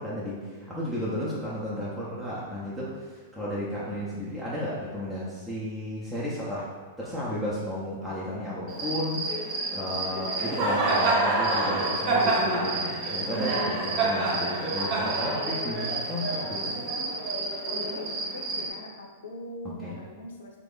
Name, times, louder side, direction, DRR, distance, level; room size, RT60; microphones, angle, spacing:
voice 1, 0.0-6.7 7.0-9.3 9.7-16.7 19.8-20.0, left 1 dB, 5° right, -9 dB, 0.7 m, -33 dB
voice 2, 0.9-1.3 17.7-20.5, left 1 dB, 80° left, 1 dB, 0.6 m, -41 dB
Cricket, 8.7-18.7, right 2 dB, 40° right, 0.7 m, -28 dB
3.0 x 2.4 x 3.6 m, 1.4 s
hypercardioid pair, 105°, 0 cm